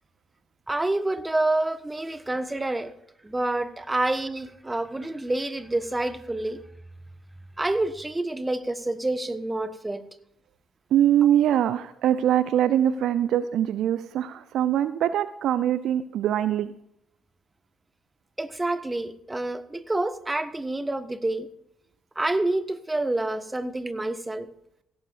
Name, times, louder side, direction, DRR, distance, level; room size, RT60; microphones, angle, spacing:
voice 1, 0.7-2.9 3.2-6.6 7.6-10.0 18.4-21.5 22.1-24.5, right 2 dB, 15° right, 12 dB, 1.3 m, -28 dB
voice 2, 10.9-16.7, right 10 dB, 60° right, 14 dB, 0.5 m, -23 dB
16.5 x 14.5 x 2.5 m, 0.74 s
figure-of-eight pair, 45°, 0 cm